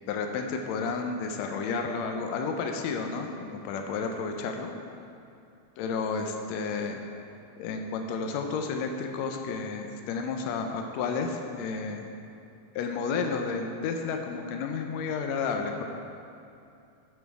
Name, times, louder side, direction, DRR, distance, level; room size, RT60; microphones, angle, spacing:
voice 1, 0.1-4.7 5.8-7.0 7.6-12.1 12.7-15.9, left 5 dB, 85° left, 4 dB, 1.5 m, -31 dB
8.0 x 7.4 x 4.7 m, 2.6 s
omnidirectional pair, 3.8 m